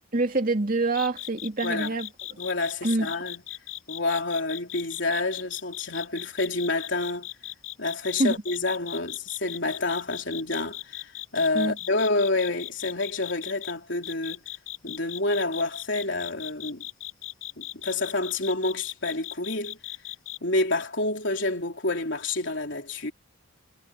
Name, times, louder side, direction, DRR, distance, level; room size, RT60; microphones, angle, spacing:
voice 1, 0.1-2.1 2.8-3.1 8.2-8.4 11.5-11.8, right 2 dB, 40° right, 2.7 m, -25 dB
sound 1, 0.9-13.7 14.0-20.4, left 15 dB, 85° left, 7.3 m, -38 dB
voice 2, 1.6-1.9 2.4-3.4 3.9-7.3 7.8-14.4 14.8-16.8 17.6-19.8 20.4-23.1, left 2 dB, 60° left, 4.0 m, -28 dB
head